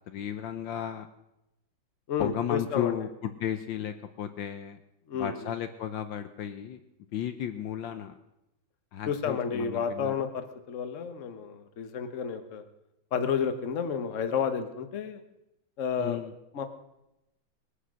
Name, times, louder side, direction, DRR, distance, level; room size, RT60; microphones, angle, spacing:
voice 1, 0.1-1.1 2.2-4.8 5.2-6.8 7.1-8.2 8.9-10.3 16.0-16.3, left 10 dB, 70° left, 9 dB, 1.4 m, -34 dB
voice 2, 2.1-3.1 5.1-5.5 9.1-12.6 13.1-15.2 15.8-16.2 16.5-16.7, left 7 dB, 45° left, 8 dB, 1.3 m, -31 dB
20.5 x 10.0 x 6.3 m, 0.90 s
omnidirectional pair, 2.2 m